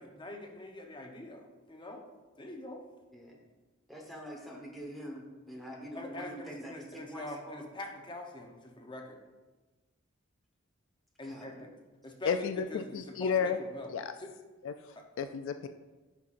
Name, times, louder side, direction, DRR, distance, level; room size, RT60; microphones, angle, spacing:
voice 1, 0.0-2.1 2.3-2.8 5.9-9.2 11.2-11.7 12.0-12.3 12.7-13.9 14.2-14.3 15.0-15.1, left 2 dB, 20° left, 2 dB, 0.8 m, -44 dB
voice 2, 3.9-7.6 11.2-11.6, equal, ahead, -2 dB, 1.2 m, -45 dB
voice 3, 12.3-13.6 13.9-14.1 14.6-14.7 15.2-15.7, left 6 dB, 65° left, 9 dB, 0.3 m, -31 dB
9.9 x 5.7 x 2.5 m, 1.2 s
head